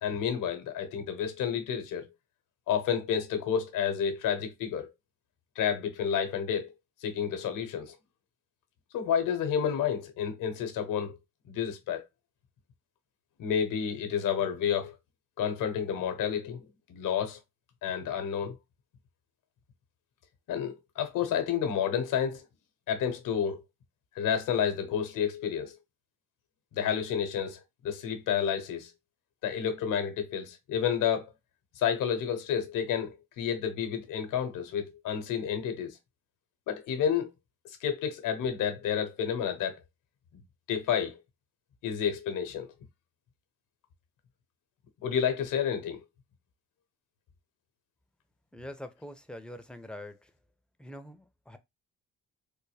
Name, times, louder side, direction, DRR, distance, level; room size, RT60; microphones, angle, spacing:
voice 1, 0.0-2.1 2.7-4.9 5.6-6.7 7.0-8.0 8.9-11.2 11.5-12.0 13.4-15.0 15.4-17.4 17.8-18.6 20.5-22.4 22.9-23.6 24.1-25.8 26.7-28.9 29.4-31.3 31.8-36.0 36.7-37.3 37.6-39.8 40.7-41.2 41.8-42.7 45.0-46.0, left 8 dB, 75° left, 1.0 m, -30 dB
voice 2, 48.5-50.3 50.8-51.6, left 1 dB, 5° left, 0.7 m, -44 dB
3.5 x 2.2 x 3.3 m
supercardioid pair, 60°, 32 cm